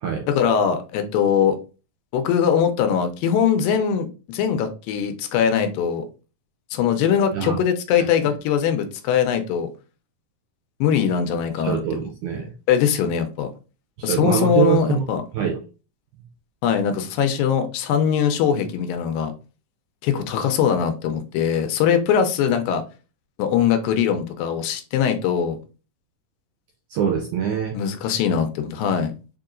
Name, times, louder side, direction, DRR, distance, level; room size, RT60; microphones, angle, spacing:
voice 1, 0.3-1.6 2.1-6.1 6.7-9.7 10.8-11.8 12.4-13.5 14.0-15.2 16.6-19.3 20.0-22.8 23.4-25.6 27.7-29.1, left 8 dB, 80° left, 7 dB, 2.3 m, -21 dB
voice 2, 11.6-12.5 14.0-15.1 15.3-15.6 26.9-27.8, right 8 dB, 80° right, 2 dB, 1.8 m, -24 dB
6.7 x 2.8 x 2.5 m, 0.33 s
omnidirectional pair, 4.2 m